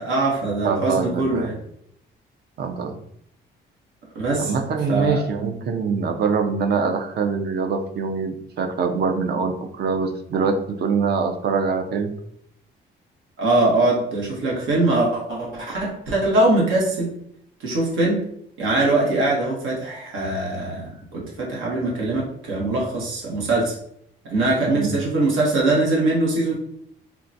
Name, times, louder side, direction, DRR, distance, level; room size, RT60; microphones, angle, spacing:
voice 1, 0.0-1.6 4.1-4.6 4.9-5.2 13.4-17.1 17.6-18.2 18.6-23.7 24.2-26.5, right 2 dB, 85° right, -3 dB, 1.2 m, -22 dB
voice 2, 0.6-1.5 2.6-2.9 4.4-12.1 24.7-24.9, right 5 dB, 55° right, 5 dB, 0.5 m, -24 dB
3.7 x 2.2 x 2.6 m, 0.70 s
cardioid pair, 90°, 20 cm